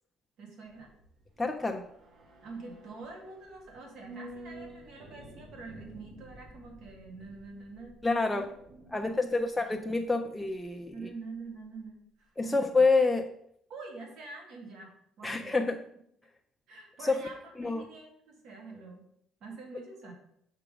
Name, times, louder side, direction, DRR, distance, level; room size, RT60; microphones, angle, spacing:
voice 1, 0.4-0.9 2.4-8.0 8.3-9.4 10.9-12.7 13.7-15.7 16.7-19.1 19.4-20.1, right 3 dB, 70° right, 1 dB, 1.9 m, -46 dB
sound 1, 0.7-11.1 11.4-11.5, right 1 dB, 55° right, 1.1 m, -52 dB
voice 2, 1.4-1.9 8.0-8.5 8.9-11.1 12.4-13.3 15.2-15.8 17.0-17.2 17.6-17.8, left 3 dB, 10° left, 3 dB, 0.4 m, -27 dB
5.8 x 3.6 x 5.0 m, 0.72 s
cardioid pair, 110°, 0 cm